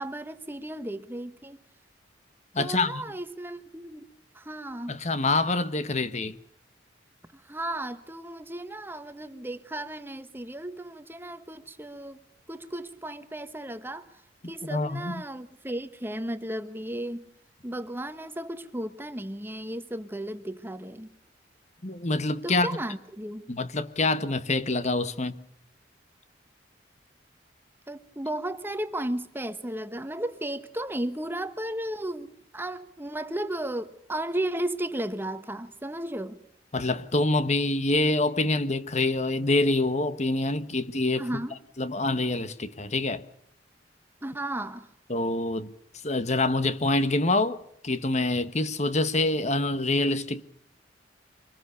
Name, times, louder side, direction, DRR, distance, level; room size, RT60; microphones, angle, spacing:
voice 1, 0.0-1.6 2.6-5.0 7.3-12.2 12.5-14.1 14.5-17.2 17.6-21.1 22.4-23.4 27.9-36.4 41.2-41.6 44.2-44.9, right 1 dB, 10° right, 1.3 m, -34 dB
voice 2, 2.5-3.0 4.9-6.3 14.6-15.2 21.8-22.8 23.5-25.4 36.7-41.3 41.8-43.2 45.1-45.7 46.0-50.4, left 2 dB, 40° left, 1.2 m, -26 dB
25.0 x 20.0 x 6.9 m
head